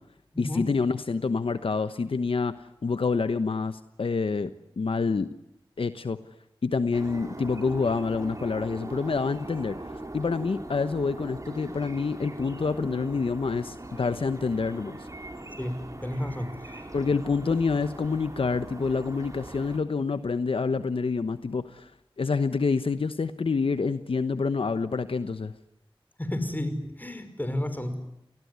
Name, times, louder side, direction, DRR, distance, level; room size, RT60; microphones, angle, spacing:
voice 1, 0.4-2.5 2.8-4.5 4.8-5.3 5.8-6.2 6.6-9.8 10.1-15.0 16.9-21.9 22.2-25.5, left 4 dB, 80° left, 11 dB, 1.1 m, -27 dB
sound 1, 6.9-19.8, right 2 dB, 35° right, 5.7 m, -41 dB
voice 2, 15.6-16.8 26.2-28.0, left 1 dB, 20° left, 10 dB, 5.4 m, -32 dB
28.0 x 20.0 x 9.7 m, 0.83 s
wide cardioid pair, 55°, 9 cm